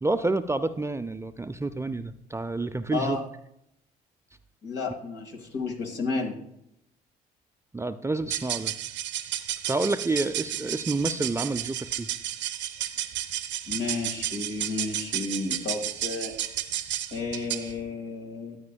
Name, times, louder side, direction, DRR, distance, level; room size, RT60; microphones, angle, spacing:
voice 1, 0.0-3.2 7.7-8.7 9.7-12.1, right 2 dB, 15° right, 10 dB, 0.5 m, -29 dB
voice 2, 2.9-3.2 4.6-6.4 13.7-16.4 17.1-18.6, left 4 dB, 65° left, 3 dB, 2.0 m, -32 dB
sound 1, 8.2-17.8, right 12 dB, 65° right, 0.7 m, -32 dB
13.5 x 9.3 x 2.3 m, 0.77 s
hypercardioid pair, 55°, 20 cm